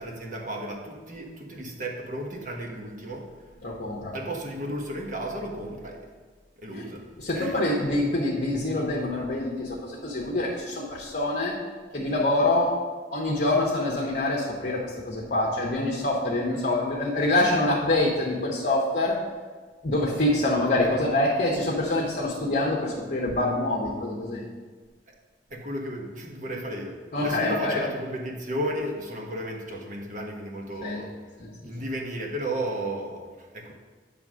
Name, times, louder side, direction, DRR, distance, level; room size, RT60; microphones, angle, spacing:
voice 1, 0.0-3.8 4.1-6.1 6.6-7.0 7.3-7.8 25.1-25.2 25.5-31.1 31.6-33.7, right 1 dB, 45° right, 0 dB, 1.2 m, -34 dB
voice 2, 3.6-4.1 7.2-11.6 11.9-12.7 13.1-19.2 19.8-24.4 27.1-27.8 30.8-31.0 31.4-31.5, left 2 dB, 50° left, -4 dB, 1.0 m, -25 dB
9.0 x 3.5 x 6.2 m, 1.4 s
head